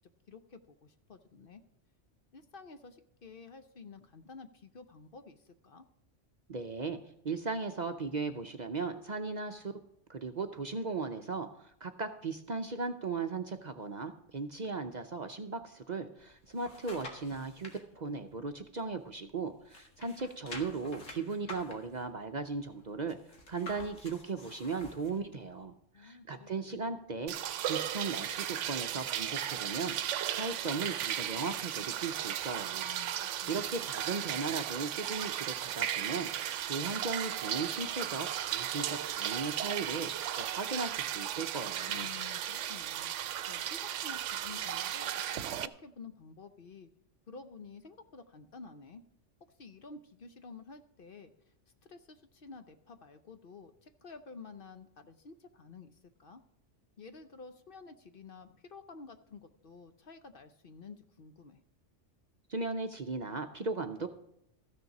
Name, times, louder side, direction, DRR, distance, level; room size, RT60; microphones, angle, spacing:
voice 1, 0.3-1.6 2.3-5.9 25.9-27.0 32.8-33.8 41.9-46.9 47.3-49.0 49.6-51.5 51.8-56.4 57.0-61.6, left 4 dB, 50° left, 9 dB, 0.8 m, -51 dB
voice 2, 6.5-7.0 7.2-9.7 10.1-23.2 23.5-27.4 27.7-32.9 33.5-42.1 62.5-64.1, right 4 dB, 45° right, 7 dB, 0.7 m, -37 dB
sound 1, 16.2-17.8 18.3-19.4 19.6-25.2 25.7-25.8, left 2 dB, 85° left, 2.2 m, -49 dB
sound 2, 27.3-45.7, right 11 dB, 75° right, 0.9 m, -35 dB
14.0 x 6.7 x 6.0 m, 0.77 s
omnidirectional pair, 1.3 m